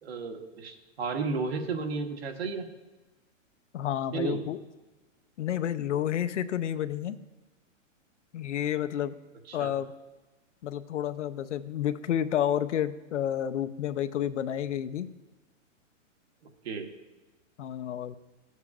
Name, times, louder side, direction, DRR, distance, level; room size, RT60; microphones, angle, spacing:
voice 1, 0.0-2.7 4.1-4.4 9.5-9.7 16.6-16.9, right 4 dB, 55° right, 5 dB, 1.3 m, -33 dB
voice 2, 3.7-4.6 5.4-7.2 8.3-9.1 9.5-9.9 10.6-15.1 17.6-18.2, left 10 dB, 65° left, 10 dB, 0.6 m, -30 dB
14.5 x 8.0 x 2.4 m, 1.2 s
hypercardioid pair, 180°, 38 cm